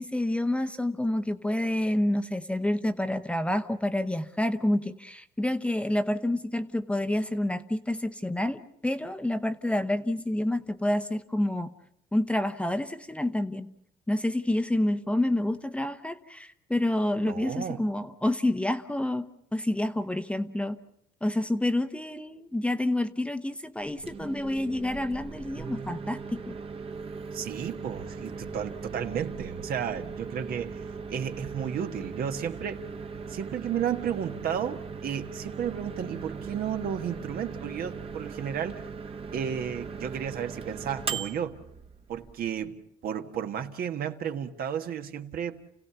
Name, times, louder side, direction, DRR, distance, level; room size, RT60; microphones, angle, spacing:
voice 1, 0.0-11.7 12.1-13.7 14.1-19.3 19.5-20.8 21.2-26.5, left 1 dB, 5° left, 0.9 m, -28 dB
voice 2, 17.2-17.8 27.3-30.8 31.1-32.8 33.3-38.8 39.3-41.6 42.1-45.6, right 8 dB, 60° right, 1.5 m, -33 dB
Microwave oven, 23.8-42.7, right 5 dB, 35° right, 1.2 m, -39 dB
29.5 x 16.5 x 6.9 m
cardioid pair, 110°, 17 cm